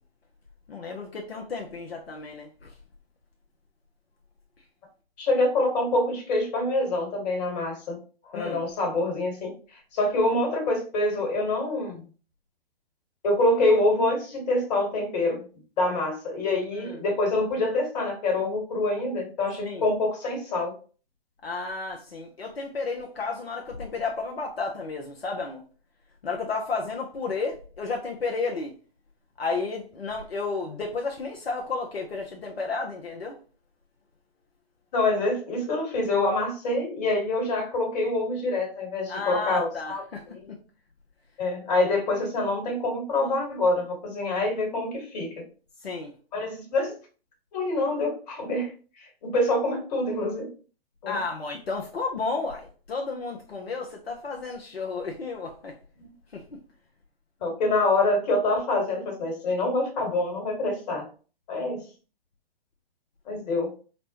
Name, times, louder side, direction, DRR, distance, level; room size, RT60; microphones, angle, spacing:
voice 1, 0.7-2.7 8.2-8.6 16.8-17.0 19.6-19.9 21.4-25.6 26.2-28.7 29.4-33.4 39.1-40.6 45.8-46.1 51.1-55.8 56.3-56.6, left 4 dB, 80° left, 0.7 m, -32 dB
voice 2, 5.2-8.0 8.3-9.5 9.9-12.0 13.2-15.4 15.8-20.7 34.9-40.0 40.3-40.5 41.4-45.3 46.3-46.9 47.5-48.7 49.0-50.5 51.0-51.2 57.4-61.1 61.5-61.8 63.3-63.7, left 2 dB, 40° left, 1.5 m, -26 dB
4.1 x 2.1 x 2.8 m
figure-of-eight pair, 120°, 30 cm